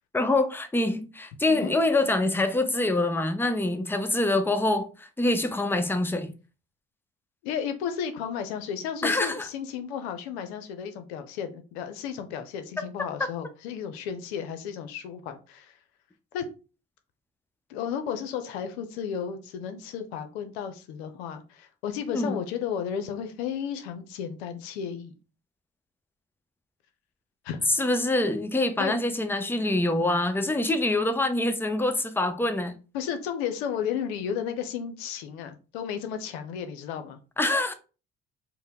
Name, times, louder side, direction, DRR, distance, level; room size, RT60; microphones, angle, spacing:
voice 1, 0.1-6.3 9.0-9.5 22.1-22.4 27.8-32.7 37.4-37.7, left 2 dB, 5° left, 0.7 m, -25 dB
voice 2, 7.4-15.8 16.3-16.4 17.7-25.1 27.4-27.7 28.8-29.0 32.9-37.2, left 8 dB, 85° left, 0.6 m, -33 dB
4.4 x 2.1 x 3.5 m
hypercardioid pair, 55°, 31 cm